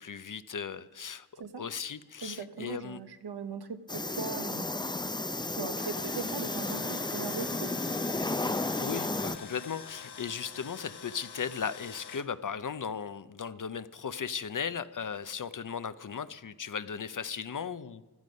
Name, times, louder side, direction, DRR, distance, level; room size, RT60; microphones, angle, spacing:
voice 1, 0.0-3.0 8.8-18.0, left 6 dB, 55° left, 14 dB, 0.7 m, -37 dB
voice 2, 2.2-4.7 5.5-7.7, right 5 dB, 80° right, 9 dB, 1.1 m, -39 dB
sound 1, 3.9-9.4, left 2 dB, 10° left, 0.5 m, -33 dB
Tools, 5.5-12.3, left 6 dB, 90° left, 0.9 m, -47 dB
16.0 x 12.5 x 5.3 m, 1.2 s
wide cardioid pair, 55°, 39 cm